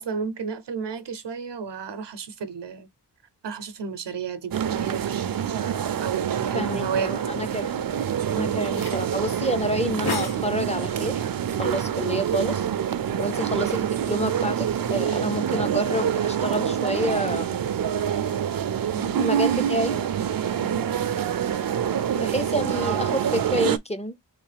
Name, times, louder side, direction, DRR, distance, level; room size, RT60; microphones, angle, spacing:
voice 1, 0.0-2.9 3.4-5.3 6.0-7.2 8.3-8.6 18.9-19.2 20.5-20.8, right 5 dB, 85° right, 0.7 m, -33 dB
sound 1, 4.5-23.8, right 9 dB, 60° right, 0.5 m, -26 dB
voice 2, 6.5-7.9 8.4-11.2 11.6-12.7 13.2-17.6 19.2-20.0 22.1-24.2, equal, 15° left, 0.4 m, -28 dB
sound 2, 7.8-15.6, left 4 dB, 65° left, 1.3 m, -41 dB
3.3 x 3.1 x 3.2 m
wide cardioid pair, 90°, 41 cm